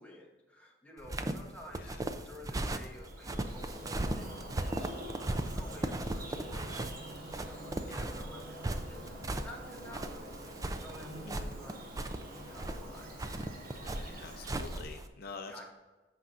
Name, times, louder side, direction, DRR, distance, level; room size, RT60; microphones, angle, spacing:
voice 1, 0.0-9.2 9.4-11.8 12.4-13.1 15.5-15.6, left 1 dB, 10° left, -2 dB, 1.4 m, -52 dB
sound 1, 1.0-15.1, right 1 dB, 20° right, 0.4 m, -37 dB
Bird vocalization bird call bird song, 2.8-14.8, right 1 dB, 50° right, 1.5 m, -46 dB
voice 2, 13.8-15.6, left 4 dB, 55° left, 5 dB, 0.6 m, -47 dB
14.0 x 5.6 x 2.6 m, 1.2 s
head